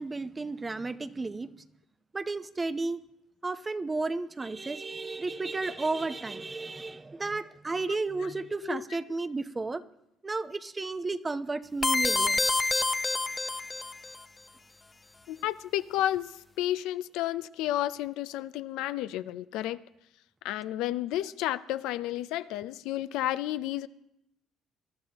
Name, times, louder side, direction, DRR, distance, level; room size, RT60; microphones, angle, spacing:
voice 1, 0.0-1.5 2.1-3.0 3.4-9.8 10.2-12.4, right 3 dB, 25° right, 0.8 m, -33 dB
sound 1, 11.8-14.2, left 3 dB, 25° left, 0.8 m, -27 dB
voice 2, 15.3-19.8 20.4-23.9, left 13 dB, 80° left, 0.5 m, -31 dB
22.0 x 12.5 x 2.9 m
supercardioid pair, 65°, 0 cm